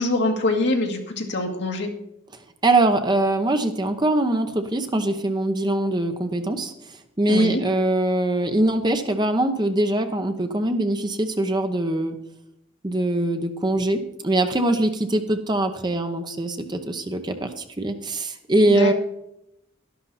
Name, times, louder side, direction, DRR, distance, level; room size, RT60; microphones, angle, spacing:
voice 1, 0.0-1.9 7.3-7.6 18.7-18.9, left 2 dB, 60° left, 3 dB, 1.9 m, -24 dB
voice 2, 2.6-6.7 7.2-12.2 12.8-18.9, right 1 dB, 20° right, 7 dB, 0.8 m, -22 dB
12.0 x 11.5 x 4.2 m, 0.80 s
head